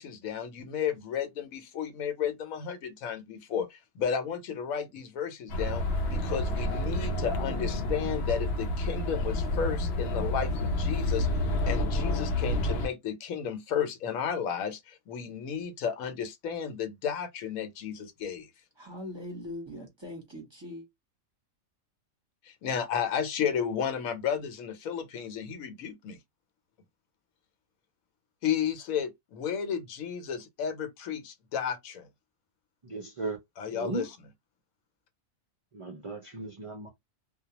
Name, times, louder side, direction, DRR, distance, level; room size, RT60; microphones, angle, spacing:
voice 1, 0.0-11.3 11.7-18.5 22.5-26.2 28.4-32.1 33.6-34.1, left 7 dB, 80° left, 1.1 m, -33 dB
sound 1, 5.5-12.9, left 1 dB, 60° left, 0.7 m, -29 dB
voice 2, 18.8-20.9, left 1 dB, 25° right, 0.8 m, -41 dB
voice 3, 32.8-33.4 33.7-34.0 35.7-36.9, right 3 dB, 60° right, 0.3 m, -36 dB
2.3 x 2.2 x 2.8 m
omnidirectional pair, 1.4 m